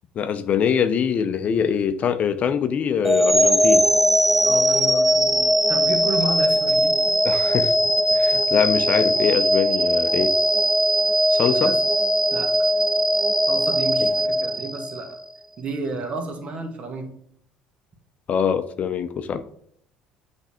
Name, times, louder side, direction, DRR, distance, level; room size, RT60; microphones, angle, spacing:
voice 1, 0.2-3.9 7.2-7.8 8.1-10.3 11.3-11.8 14.0-14.1 18.3-19.4, left 7 dB, 50° left, 0.5 m, -23 dB
sound 1, 3.0-15.2, equal, 5° right, 0.5 m, -20 dB
voice 2, 4.4-7.0 11.5-11.8 12.3-12.5 13.5-15.2 15.6-17.2, right 3 dB, 45° right, 1.6 m, -31 dB
7.9 x 3.3 x 4.3 m
hypercardioid pair, 70°, 3 cm